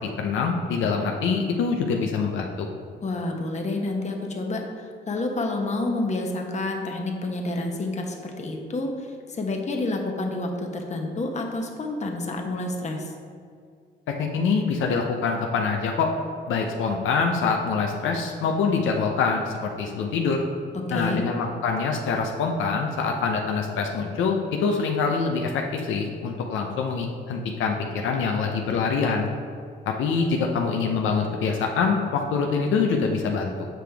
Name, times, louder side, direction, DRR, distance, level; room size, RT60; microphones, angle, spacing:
voice 1, 0.2-2.7 14.2-16.1 16.5-20.4 20.9-29.3 29.9-33.7, left 5 dB, 80° left, 2 dB, 0.7 m, -25 dB
voice 2, 3.0-13.1 20.7-21.2, left 2 dB, 35° left, 2 dB, 1.0 m, -29 dB
7.6 x 5.0 x 3.4 m, 2.3 s
cardioid pair, 90°, 20 cm